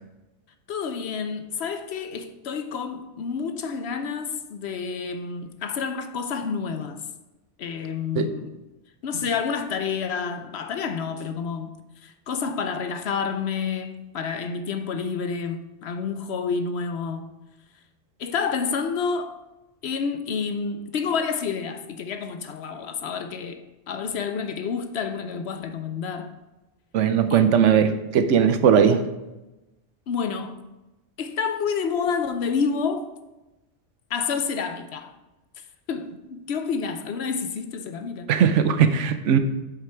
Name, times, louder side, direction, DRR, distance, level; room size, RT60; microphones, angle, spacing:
voice 1, 0.7-7.0 7.6-8.6 9.0-11.8 12.0-17.3 18.2-19.4 19.8-26.3 27.3-27.8 30.1-30.6 31.2-33.1 34.1-35.1 35.9-38.3, left 6 dB, 65° left, 8 dB, 0.9 m, -29 dB
voice 2, 26.9-29.0 38.3-39.4, right 7 dB, 80° right, 10 dB, 1.0 m, -19 dB
8.0 x 5.9 x 4.5 m, 1.0 s
omnidirectional pair, 1.3 m